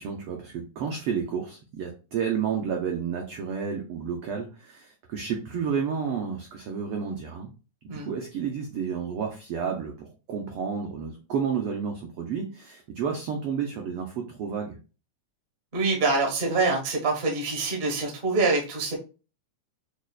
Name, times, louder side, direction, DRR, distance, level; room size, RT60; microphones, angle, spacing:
voice 1, 0.0-7.5 7.9-14.8, right 6 dB, 90° right, 1 dB, 1.2 m, -31 dB
voice 2, 15.7-18.9, right 3 dB, 65° right, 0 dB, 0.6 m, -25 dB
6.3 x 2.1 x 2.3 m, 0.33 s
omnidirectional pair, 3.3 m